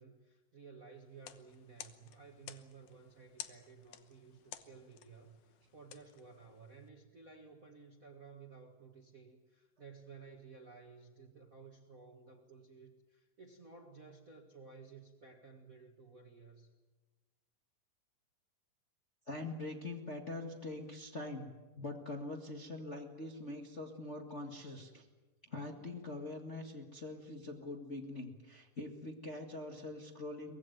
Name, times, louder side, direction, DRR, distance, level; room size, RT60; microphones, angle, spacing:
voice 1, 0.0-16.7, right 5 dB, 35° right, 3 dB, 1.5 m, -55 dB
sound 1, 1.1-6.9, left 11 dB, 75° left, 2.5 m, -53 dB
voice 2, 19.3-21.5 21.8-25.1 25.5-30.6, left 2 dB, 30° left, 2 dB, 1.5 m, -43 dB
23.5 x 19.5 x 9.3 m, 1.2 s
omnidirectional pair, 3.8 m